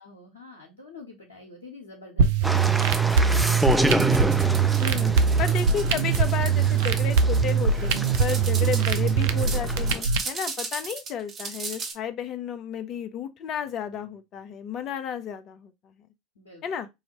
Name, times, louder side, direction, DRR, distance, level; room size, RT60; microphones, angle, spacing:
voice 1, 0.0-2.9 3.5-3.9 4.8-5.0 5.4-5.5 6.8-6.9 16.4-16.6, left 2 dB, 85° left, 0.9 m, -46 dB
sound 1, 2.2-10.2, right 6 dB, 70° right, 0.5 m, -22 dB
sound 2, 2.4-10.0, right 1 dB, 5° right, 0.5 m, -29 dB
sound 3, 2.6-11.9, right 4 dB, 40° right, 1.4 m, -37 dB
voice 2, 4.8-15.9 16.6-16.9, left 8 dB, 45° left, 0.6 m, -32 dB
4.7 x 2.6 x 2.9 m
hypercardioid pair, 75°, 0 cm